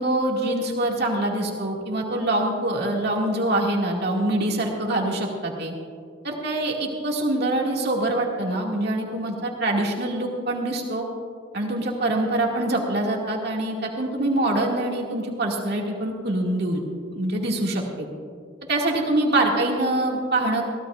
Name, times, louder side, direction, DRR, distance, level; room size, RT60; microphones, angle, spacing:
voice 1, 0.0-5.7 6.2-11.1 11.5-18.1 18.7-20.6, right 1 dB, 60° right, -1 dB, 2.1 m, -24 dB
22.5 x 16.0 x 2.5 m, 2.3 s
head